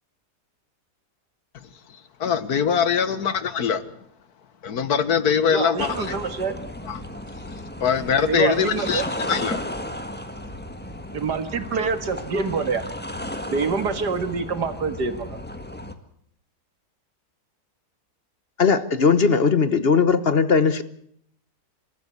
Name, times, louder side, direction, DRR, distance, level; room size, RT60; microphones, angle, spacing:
voice 1, 2.2-3.8 4.6-6.1 6.8-7.0 7.8-9.6, left 7 dB, 70° left, 1.7 m, -22 dB
voice 2, 5.4-6.5 8.3-9.0 11.1-12.8 13.4-15.3, right 5 dB, 85° right, 2.4 m, -26 dB
sound 1, 5.8-15.9, left 1 dB, 5° left, 1.5 m, -34 dB
voice 3, 18.6-20.8, left 5 dB, 40° left, 1.2 m, -18 dB
27.0 x 14.0 x 8.1 m
omnidirectional pair, 1.7 m